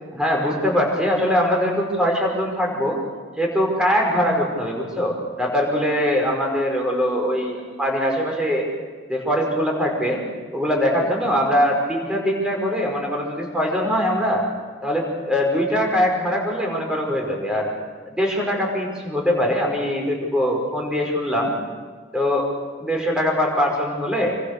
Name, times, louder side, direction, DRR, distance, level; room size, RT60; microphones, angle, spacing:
voice 1, 0.1-3.0 3.4-8.7 9.1-10.2 10.5-14.4 14.8-17.7 18.1-21.5 22.1-22.5 22.8-24.3, equal, 5° right, 0 dB, 5.4 m, -22 dB
27.5 x 25.0 x 6.9 m, 1.5 s
head